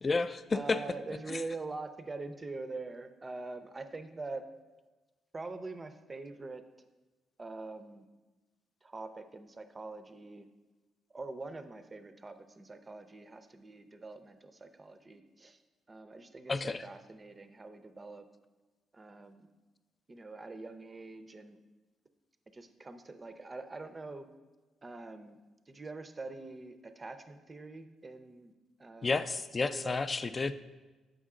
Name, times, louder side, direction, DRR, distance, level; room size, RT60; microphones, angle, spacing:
voice 1, 0.0-0.8 1.3-1.4 16.5-16.8 29.0-30.5, left 3 dB, 30° left, 13 dB, 0.3 m, -31 dB
voice 2, 0.5-4.5 5.3-6.7 7.4-8.1 8.8-10.5 11.1-15.6 15.9-18.3 18.9-19.5 20.1-21.6 22.5-24.3 24.8-25.4 25.7-28.5 28.8-29.3 29.6-30.1, right 3 dB, 25° right, 9 dB, 0.5 m, -44 dB
7.3 x 5.1 x 3.7 m, 1.2 s
cardioid pair, 90°, 0 cm